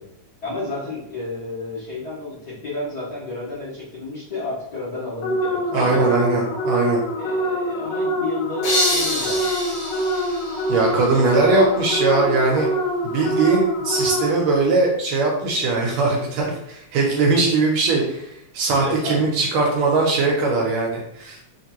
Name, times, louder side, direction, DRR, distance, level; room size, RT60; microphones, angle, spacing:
voice 1, 0.4-6.2 7.2-9.5 11.0-11.4 18.8-19.3, left 3 dB, 50° left, -10 dB, 1.1 m, -31 dB
sound 1, 5.2-14.6, equal, 90° left, 2.3 m, -25 dB
voice 2, 5.7-7.0 10.1-10.2 10.7-12.7 13.0-18.3 18.5-21.4, right 3 dB, 75° right, -1 dB, 1.6 m, -20 dB
sound 2, 8.6-11.4, left 1 dB, 70° left, 2.7 m, -26 dB
5.6 x 2.9 x 2.9 m, 0.77 s
omnidirectional pair, 3.5 m